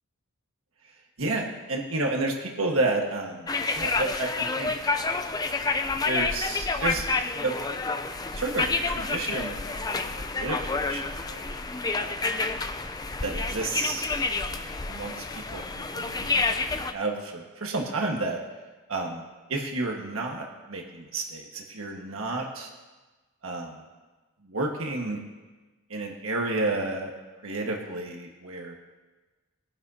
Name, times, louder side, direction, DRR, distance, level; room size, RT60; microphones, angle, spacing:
voice 1, 1.2-3.5 3.7-4.9 6.0-7.1 7.4-7.5 8.3-11.4 12.0-12.3 13.2-14.0 14.4-15.2 15.5-16.4 16.7-18.4 18.9-19.2 19.5-22.7 23.4-23.8 24.4-25.2 25.9-27.1 27.4-28.7, right 2 dB, 80° right, 1 dB, 1.5 m, -31 dB
sound 1, 3.5-16.9, left 3 dB, 20° left, 0.5 m, -29 dB
21.5 x 10.5 x 2.8 m, 1.2 s
head